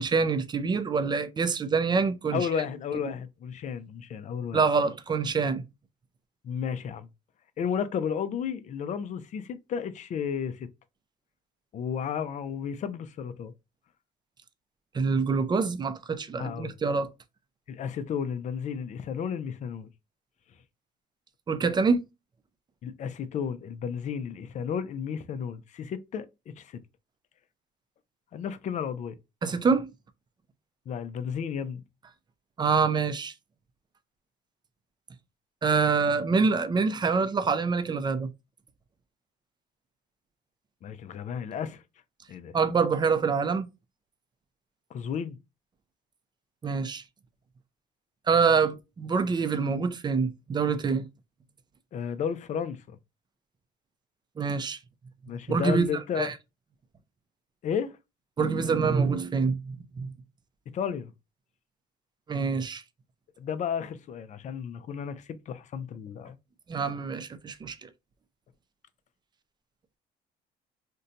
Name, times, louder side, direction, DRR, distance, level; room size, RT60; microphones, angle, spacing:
voice 1, 0.0-2.5 4.5-5.6 14.9-17.1 21.5-22.0 29.4-29.9 32.6-33.3 35.6-38.3 42.5-43.7 46.6-47.0 48.3-51.1 54.4-54.8 55.5-55.9 56.2-56.3 58.4-60.1 62.3-62.8 66.7-67.9, right 5 dB, 25° right, 0.5 m, -26 dB
voice 2, 2.3-4.6 6.4-7.1 7.6-10.7 11.7-13.5 16.4-16.7 17.7-19.9 22.8-26.3 26.6-26.8 28.3-29.2 30.9-31.8 40.8-41.8 42.3-42.6 44.9-45.4 51.9-53.0 55.3-56.3 57.6-58.0 60.7-61.1 63.4-66.4, left 7 dB, 45° left, 0.5 m, -33 dB
2.7 x 2.2 x 3.7 m
cardioid pair, 110°, 17 cm